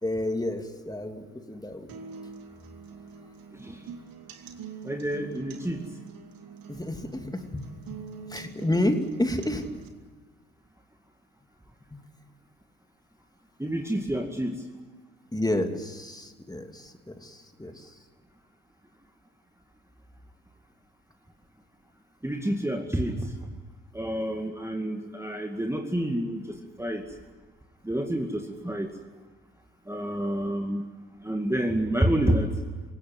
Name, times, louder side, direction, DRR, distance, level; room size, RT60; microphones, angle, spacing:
voice 1, 0.0-2.0 6.7-9.8 11.9-12.0 15.3-18.0, left 1 dB, 10° left, 6 dB, 2.7 m, -30 dB
sound 1, 1.9-9.9, right 6 dB, 60° right, 2.4 m, -44 dB
voice 2, 3.5-3.8 4.8-5.9 13.6-14.7 22.2-23.4 23.9-27.0 27.8-28.9 29.9-30.9 31.2-32.5, right 1 dB, 5° right, 3 dB, 2.2 m, -28 dB
26.0 x 17.0 x 9.5 m, 1.4 s
figure-of-eight pair, 50°, 39 cm